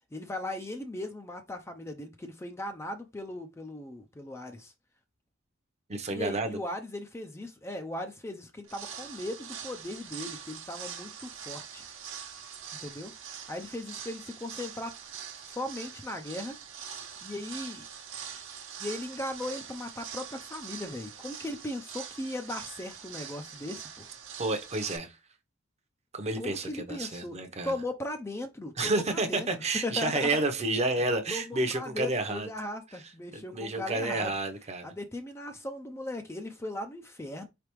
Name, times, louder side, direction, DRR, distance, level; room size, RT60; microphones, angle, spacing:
voice 1, 0.1-4.7 6.1-11.8 12.8-14.9 15.5-16.6 17.2-17.9 18.8-24.1 26.4-30.4 31.3-34.3 34.8-37.5, left 1 dB, 15° left, 0.4 m, -38 dB
voice 2, 5.9-6.6 24.4-25.2 26.1-27.7 28.8-32.5 33.3-34.9, right 2 dB, 30° right, 0.7 m, -30 dB
sound 1, 8.6-25.0, right 8 dB, 65° right, 1.0 m, -43 dB
4.7 x 3.4 x 3.0 m
head